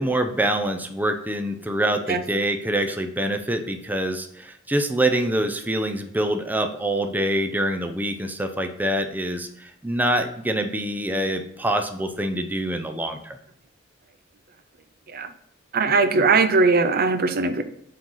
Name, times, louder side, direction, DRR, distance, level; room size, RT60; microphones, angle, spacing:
voice 1, 0.0-13.4, right 1 dB, 10° right, 6 dB, 0.6 m, -25 dB
voice 2, 15.7-17.6, right 4 dB, 50° right, 9 dB, 0.6 m, -20 dB
7.5 x 3.8 x 5.6 m, 0.73 s
head